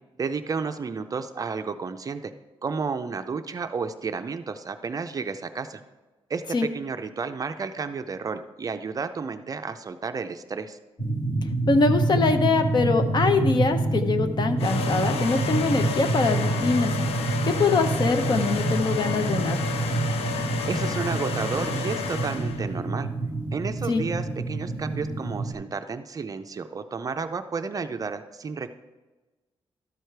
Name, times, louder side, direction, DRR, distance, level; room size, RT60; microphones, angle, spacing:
voice 1, 0.2-2.3 2.6-5.8 6.3-6.4 6.7-10.8 20.7-23.1 23.5-28.7, right 5 dB, 35° right, 8 dB, 0.4 m, -32 dB
sound 1, 11.0-25.5, right 3 dB, 15° left, 1.8 m, -27 dB
voice 2, 11.7-16.9 17.4-19.7 23.9-24.0, left 4 dB, 45° left, 7 dB, 0.7 m, -23 dB
sound 2, 14.6-22.7, left 5 dB, 75° left, 0.6 m, -31 dB
12.5 x 4.9 x 4.6 m, 1.2 s
wide cardioid pair, 140°, 10 cm